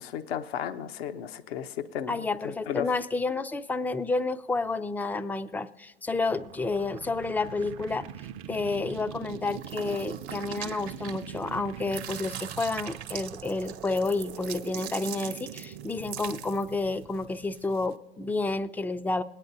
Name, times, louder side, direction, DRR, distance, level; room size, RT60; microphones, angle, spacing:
voice 1, 0.0-2.9, left 9 dB, 70° left, 9 dB, 0.8 m, -34 dB
voice 2, 2.1-8.1 8.5-19.2, left 3 dB, 5° left, 12 dB, 0.4 m, -30 dB
sound 1, 6.3-17.9, right 10 dB, 40° right, 0.6 m, -43 dB
sound 2, 9.5-11.5 11.8-16.7, right 9 dB, 80° right, 0.9 m, -41 dB
21.5 x 9.6 x 2.7 m, 1.1 s
figure-of-eight pair, 80°, 32 cm